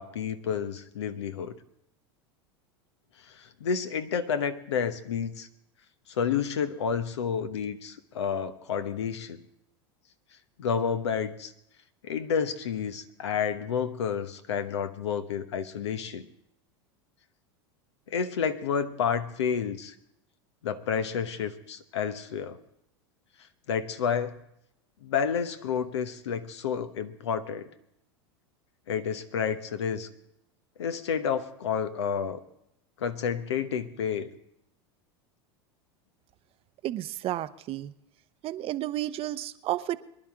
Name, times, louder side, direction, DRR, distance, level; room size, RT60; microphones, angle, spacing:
voice 1, 0.0-1.6 3.3-5.5 6.1-9.4 10.6-11.5 12.0-16.3 18.1-19.9 20.6-22.6 23.7-24.3 25.0-27.7 28.9-30.1 30.8-32.4 33.0-34.3, left 7 dB, 80° left, 10 dB, 1.1 m, -30 dB
voice 2, 36.8-37.9 38.4-40.0, right 14 dB, 40° right, 14 dB, 0.7 m, -32 dB
24.0 x 11.0 x 3.7 m, 0.76 s
hypercardioid pair, 95°, 14 cm